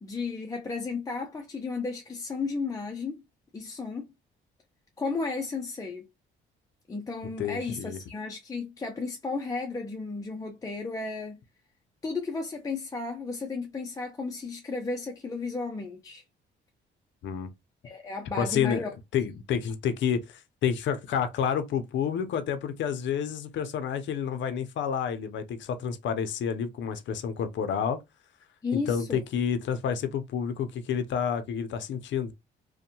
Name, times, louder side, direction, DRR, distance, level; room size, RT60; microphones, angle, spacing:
voice 1, 0.0-3.2 3.5-4.1 5.0-6.1 6.9-11.4 12.0-16.2 17.8-18.9 28.6-29.2, left 4 dB, 20° left, 0.5 m, -34 dB
voice 2, 7.4-8.0 17.2-17.5 18.4-18.8 19.1-28.0 28.7-32.3, left 7 dB, 70° left, 0.5 m, -29 dB
2.6 x 2.2 x 2.7 m
cardioid pair, 90°, 20 cm